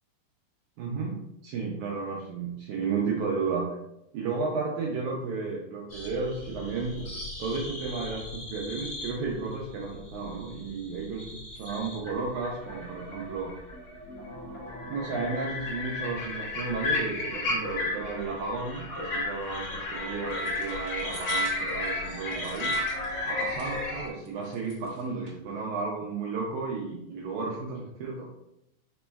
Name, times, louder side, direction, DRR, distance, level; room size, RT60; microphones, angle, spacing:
voice 1, 0.8-1.2 1.4-3.7 4.1-7.1 7.4-11.3 11.6-13.5 14.9-22.9 23.2-28.3, right 4 dB, 80° right, -2 dB, 1.8 m, -33 dB
sound 1, 5.9-24.1, left 2 dB, 55° left, 1.1 m, -34 dB
sound 2, 20.3-23.8 24.2-25.4, right 3 dB, 55° right, 1.2 m, -48 dB
5.2 x 4.1 x 2.2 m, 0.84 s
omnidirectional pair, 4.0 m